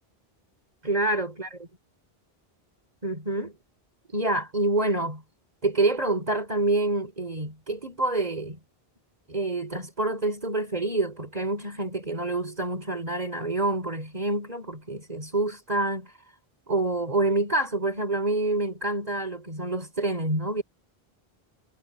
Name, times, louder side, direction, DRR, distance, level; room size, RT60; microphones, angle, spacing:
voice 1, 0.8-1.5 3.0-3.6 4.1-5.2 5.6-8.6 9.3-16.1 16.7-20.6, right 2 dB, 40° right, 4.0 m, -27 dB
omnidirectional pair, 1.0 m